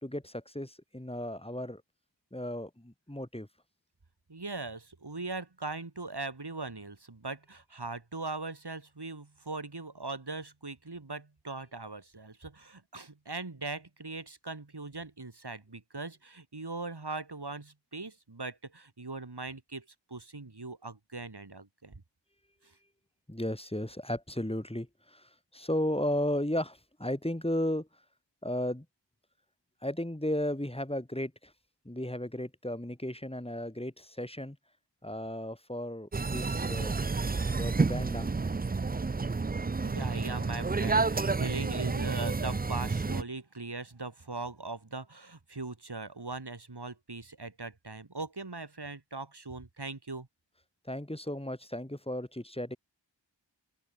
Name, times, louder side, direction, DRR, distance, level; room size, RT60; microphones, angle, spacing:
voice 1, 0.0-1.8 2.3-3.5 23.3-27.9 28.4-28.9 29.8-31.5 31.8-34.6 35.0-37.0 37.6-38.3 50.8-52.8, left 1 dB, 15° left, 2.9 m, -34 dB
voice 2, 4.3-22.0 22.6-22.7 39.8-50.3, right 3 dB, 60° right, 3.6 m, -40 dB
sound 1, 36.1-43.2, right 4 dB, 20° right, 0.5 m, -30 dB
wide cardioid pair, 40°, 45 cm